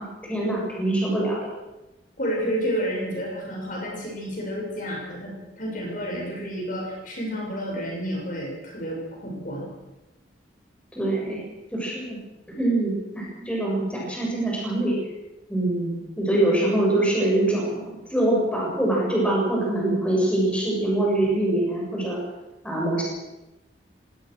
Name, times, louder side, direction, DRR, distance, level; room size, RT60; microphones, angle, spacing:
voice 1, 0.0-1.4 10.9-11.4 11.7-12.2 12.5-15.0 15.5-22.2 22.6-23.0, right 1 dB, 5° left, -3 dB, 7.0 m, -24 dB
voice 2, 2.2-9.7, equal, 45° left, -1 dB, 7.0 m, -30 dB
25.0 x 18.0 x 6.5 m, 1.0 s
head